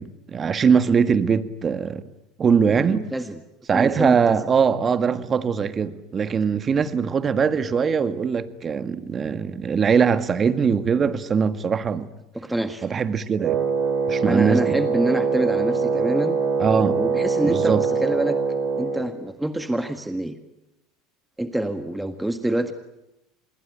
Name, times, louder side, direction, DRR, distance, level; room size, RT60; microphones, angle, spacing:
voice 1, 0.0-2.0 2.4-3.0 3.7-12.1 12.8-13.6 14.1-14.7 16.6-17.0 17.4-17.8, right 6 dB, 30° right, 1.7 m, -21 dB
voice 2, 2.7-3.4 3.7-4.4 12.3-12.8 14.2-16.4 17.0-18.4 18.8-20.4 21.4-22.7, right 1 dB, 5° right, 1.7 m, -26 dB
Wind instrument woodwind instrument, 13.4-19.1, right 5 dB, 50° right, 4.8 m, -23 dB
27.0 x 21.0 x 9.1 m
hypercardioid pair, 90°, 0 cm